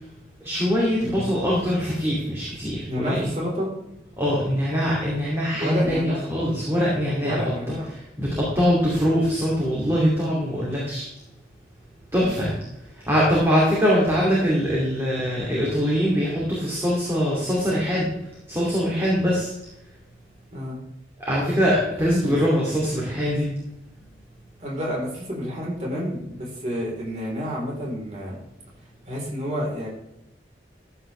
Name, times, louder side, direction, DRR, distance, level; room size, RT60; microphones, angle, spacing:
voice 1, 0.4-3.2 4.2-7.4 8.2-11.1 12.1-12.5 13.1-18.1 18.5-19.5 21.3-23.5, equal, 15° right, -6 dB, 2.7 m, -22 dB
voice 2, 2.9-3.7 5.6-6.3 7.2-7.9 12.2-12.4 20.5-20.8 22.2-22.4 24.6-28.4 29.0-29.9, equal, 40° right, -4 dB, 3.9 m, -29 dB
14.0 x 8.7 x 3.4 m, 0.88 s
head